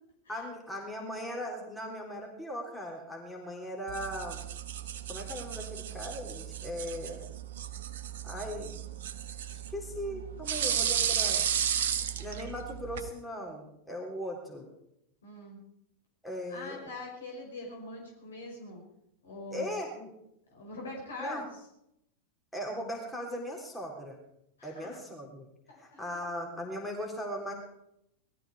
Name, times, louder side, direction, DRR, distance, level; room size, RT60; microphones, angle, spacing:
voice 1, 0.3-4.4 5.1-7.2 8.2-8.7 9.7-11.4 12.2-14.7 16.2-16.8 19.5-20.1 21.2-21.4 22.5-24.2 24.6-25.5 25.8-27.5, equal, 5° left, -1 dB, 3.7 m, -38 dB
sound 1, 3.9-13.1, right 9 dB, 60° right, 1.1 m, -34 dB
voice 2, 15.2-15.6 16.5-18.8 19.2-19.7 20.5-21.5 24.6-25.0 25.7-26.1, left 2 dB, 65° left, -1 dB, 5.4 m, -43 dB
20.0 x 14.0 x 4.9 m, 0.79 s
figure-of-eight pair, 90°, 0 cm